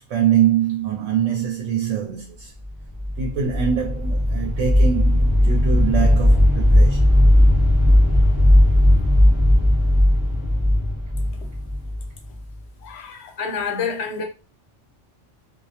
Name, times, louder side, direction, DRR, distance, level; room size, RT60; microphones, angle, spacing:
voice 1, 0.1-2.5 3.2-7.2, right 9 dB, 85° right, 0.9 m, -23 dB
sound 1, 2.8-12.6, left 1 dB, 15° right, 0.8 m, -17 dB
voice 2, 12.8-14.2, left 5 dB, 65° left, 0.8 m, -28 dB
2.3 x 2.1 x 2.7 m
omnidirectional pair, 1.3 m